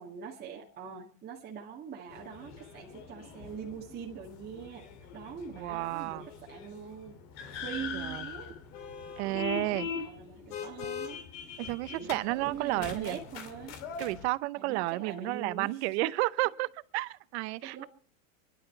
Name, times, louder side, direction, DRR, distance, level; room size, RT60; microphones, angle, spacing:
voice 1, 0.0-4.9 5.1-7.2 7.5-8.5 9.2-11.2 11.9-13.7 14.5-16.1 17.6-17.9, right 7 dB, 25° right, 2.0 m, -43 dB
sound 1, 2.1-14.3, left 6 dB, 60° left, 2.6 m, -42 dB
voice 2, 5.5-6.3 7.9-8.2 9.2-9.9 11.6-13.2 14.0-17.8, right 20 dB, 55° right, 0.7 m, -32 dB
26.5 x 11.5 x 4.4 m
supercardioid pair, 150°, 39 cm